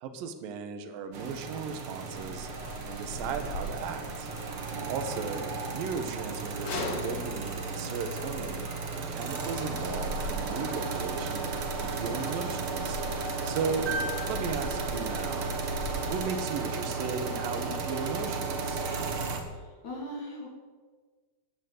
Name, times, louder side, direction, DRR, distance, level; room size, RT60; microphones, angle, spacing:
voice 1, 0.0-2.5 2.9-4.3 4.9-5.4 5.7-8.6 8.9-11.5 11.8-13.0 13.4-13.9 14.2-15.5 16.1-18.9, right 5 dB, 85° right, 8 dB, 2.9 m, -36 dB
sound 1, 1.1-19.4, right 4 dB, 50° right, 2.0 m, -34 dB
sound 2, 2.1-16.2, left 2 dB, 85° left, 4.0 m, -41 dB
sound 3, 13.9-16.2 18.2-18.3, right 2 dB, 10° right, 5.0 m, -39 dB
voice 2, 19.5-20.5, left 1 dB, 60° left, -1 dB, 3.9 m, -41 dB
13.5 x 11.0 x 7.8 m, 1.4 s
omnidirectional pair, 4.0 m